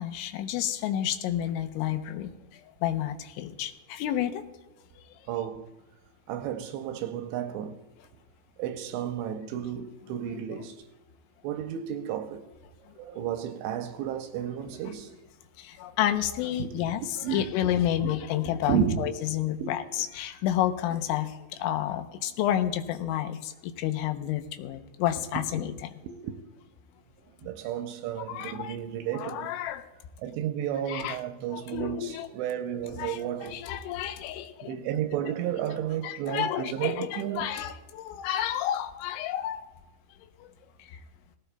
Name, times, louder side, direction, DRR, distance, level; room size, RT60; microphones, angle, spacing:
voice 1, 0.0-2.3 2.8-4.4 10.5-10.6 14.6-14.7 15.6-25.9 28.3-28.8 29.1-29.9 30.9-31.2 31.5-32.3 33.0-34.8 36.0-39.6 40.4-40.5 40.9-41.0, left 11 dB, 85° left, 3.2 m, -30 dB
voice 2, 5.3-5.7 6.3-7.8 8.6-10.8 11.4-12.5 13.0-15.1 16.6-17.5 18.0-18.1 18.7-19.1 19.6-19.8 25.5-25.7 26.0-26.4 27.4-29.5 30.2-33.6 34.6-37.5, right 9 dB, 80° right, 2.7 m, -32 dB
18.5 x 16.5 x 2.2 m
omnidirectional pair, 5.3 m